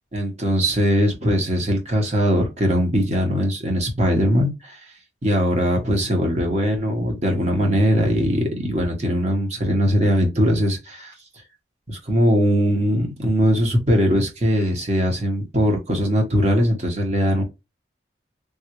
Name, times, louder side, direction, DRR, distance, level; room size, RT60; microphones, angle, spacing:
voice 1, 0.1-4.8 5.2-11.1 11.9-17.4, equal, 35° right, 1.0 m, -20 dB
3.5 x 2.3 x 2.9 m
head